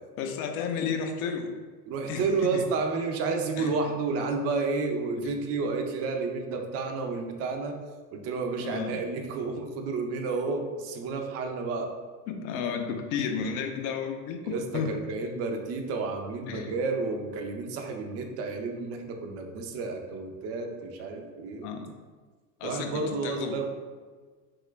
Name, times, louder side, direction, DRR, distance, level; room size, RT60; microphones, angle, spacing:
voice 1, 0.2-1.5 2.1-2.2 2.5-2.6 3.6-3.7 5.2-5.3 8.6-9.0 12.3-14.9 16.5-16.7 21.6-21.9 22.6-23.6, left 6 dB, 60° left, 5 dB, 0.6 m, -32 dB
voice 2, 1.9-7.8 8.1-11.9 14.4-21.7 22.6-23.7, right 4 dB, 35° right, 3 dB, 0.4 m, -31 dB
2.9 x 2.3 x 3.2 m, 1.4 s
hypercardioid pair, 90°, 50 cm